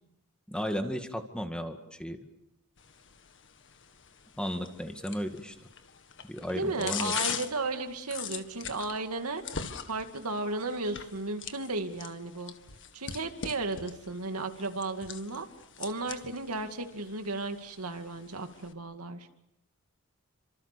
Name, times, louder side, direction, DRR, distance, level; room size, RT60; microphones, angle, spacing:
voice 1, 0.5-2.2 4.4-5.5 6.2-7.1, equal, 5° left, 6 dB, 2.1 m, -34 dB
sound 1, 2.8-18.7, left 7 dB, 55° left, 1.8 m, -42 dB
voice 2, 6.5-9.4 9.9-12.5 12.9-15.5 15.8-19.3, right 3 dB, 90° right, 6 dB, 2.4 m, -34 dB
29.5 x 26.0 x 6.9 m, 0.84 s
head